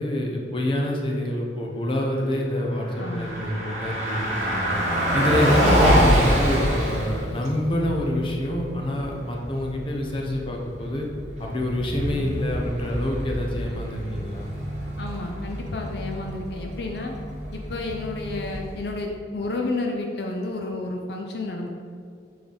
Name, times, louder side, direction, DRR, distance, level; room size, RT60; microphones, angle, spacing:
voice 1, 0.0-4.8 5.1-11.1 11.4-14.5, left 1 dB, 30° left, -1 dB, 0.8 m, -27 dB
Car passing by, 2.8-18.9, equal, 40° right, 1.5 m, -26 dB
voice 2, 3.0-3.3 15.0-17.1 17.5-21.7, left 2 dB, 60° left, 1 dB, 0.5 m, -31 dB
7.7 x 3.9 x 3.4 m, 2.2 s
head